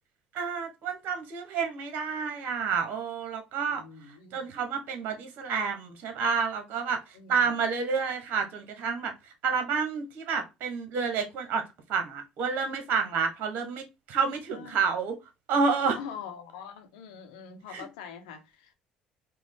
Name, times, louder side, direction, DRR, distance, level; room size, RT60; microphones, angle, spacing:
voice 1, 0.3-3.8 4.3-7.0 7.3-9.1 9.4-11.6 11.9-15.1 15.5-16.0 17.7-17.8, right 5 dB, 60° right, 0.9 m, -29 dB
voice 2, 3.7-4.5 7.1-7.5 14.2-14.8 15.9-18.7, left 7 dB, 75° left, 0.9 m, -44 dB
4.5 x 2.1 x 3.6 m
hypercardioid pair, 60°, 4 cm